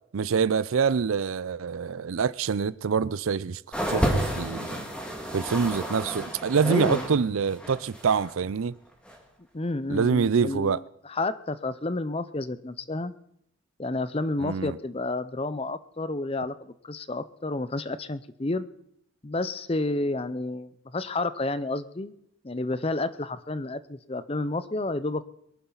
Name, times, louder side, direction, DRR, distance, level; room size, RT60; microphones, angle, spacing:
voice 1, 0.1-3.6 3.9-4.8 5.3-8.7 9.9-10.8 14.4-14.8, right 6 dB, 80° right, 0.5 m, -25 dB
sound 1, 3.7-7.2 7.4-8.3 9.1-9.2, equal, 5° left, 2.0 m, -30 dB
voice 2, 6.6-7.1 9.5-13.1 13.8-18.7 19.2-22.1 22.4-25.2, left 2 dB, 30° left, 0.6 m, -30 dB
23.0 x 11.5 x 4.0 m
head